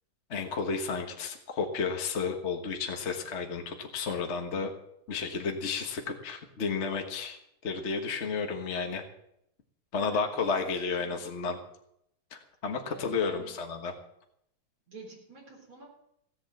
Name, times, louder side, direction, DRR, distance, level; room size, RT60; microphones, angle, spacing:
voice 1, 0.3-4.7 5.1-9.0 9.9-11.6 12.3-13.9, left 5 dB, 40° left, 4 dB, 1.3 m, -32 dB
voice 2, 10.5-11.2 12.9-13.6 14.9-15.8, right 3 dB, 40° right, -5 dB, 4.3 m, -46 dB
16.5 x 8.1 x 7.6 m, 0.77 s
omnidirectional pair, 2.3 m